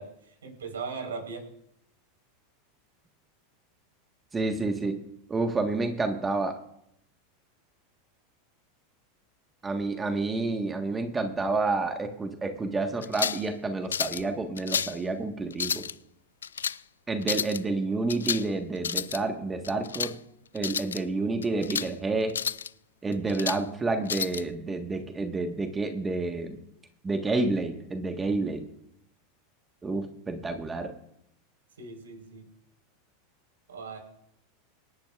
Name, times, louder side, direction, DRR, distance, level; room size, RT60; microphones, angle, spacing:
voice 1, 0.0-1.4 31.8-32.5 33.7-34.0, right 4 dB, 75° right, 2 dB, 4.4 m, -38 dB
voice 2, 4.3-5.0 5.3-6.6 9.6-15.9 17.1-20.1 20.5-22.4 23.0-26.6 27.0-28.7 29.8-30.9, right 3 dB, 20° right, 5 dB, 1.5 m, -29 dB
sound 1, 13.0-13.5 13.9-14.2 14.6-15.0 15.5-15.9 16.4-16.8 17.2-17.6 18.1-18.5 18.8-19.2 19.6-20.1 20.6-21.0 21.4-21.9 22.3-22.7 23.1-23.6 24.1-24.4, left 7 dB, 80° left, 0.4 m, -31 dB
27.5 x 10.5 x 2.5 m, 0.76 s
figure-of-eight pair, 90°, 0 cm